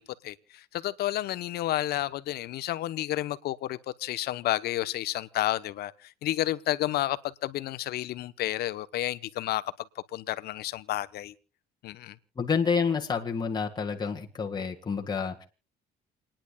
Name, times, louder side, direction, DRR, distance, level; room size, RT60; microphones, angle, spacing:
voice 1, 0.0-9.6 10.1-11.3 11.8-12.2, left 14 dB, 70° left, 1.0 m, -31 dB
voice 2, 12.4-15.4, left 5 dB, 25° left, 1.8 m, -29 dB
29.0 x 10.5 x 2.4 m
cardioid pair, 110°, 17 cm